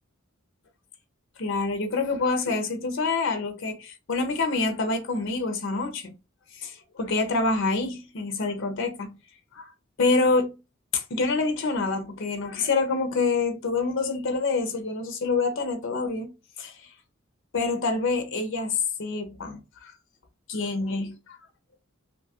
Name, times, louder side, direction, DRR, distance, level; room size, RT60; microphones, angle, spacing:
voice 1, 1.4-6.2 6.5-9.2 9.5-9.7 10.0-10.6 10.9-16.3 16.6-16.9 17.5-19.9 20.5-21.4, left 3 dB, 60° left, 0.5 m, -27 dB
2.7 x 2.2 x 2.7 m
head